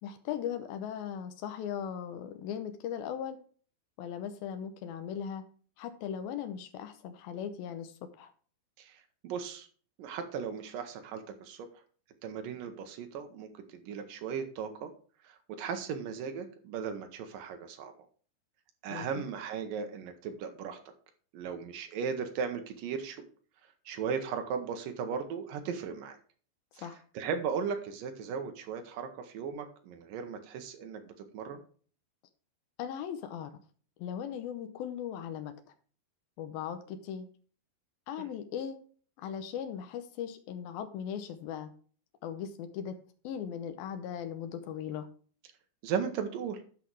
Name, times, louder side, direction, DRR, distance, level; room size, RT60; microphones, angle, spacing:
voice 1, 0.0-3.4 4.0-5.4 5.8-8.3 18.9-19.1 26.8-27.0 32.8-33.5 34.0-35.7 36.4-37.3 38.1-38.8 39.2-41.7 42.2-43.0 43.2-45.1, left 8 dB, 90° left, 8 dB, 2.1 m, -38 dB
voice 2, 8.8-9.7 10.0-11.7 12.2-14.9 15.2-17.9 18.8-20.8 21.3-23.2 23.9-26.2 26.8-26.9 27.1-31.6 38.2-38.3 45.8-46.6, right 6 dB, 75° right, 6 dB, 2.0 m, -37 dB
10.5 x 5.8 x 4.7 m, 0.42 s
omnidirectional pair, 5.3 m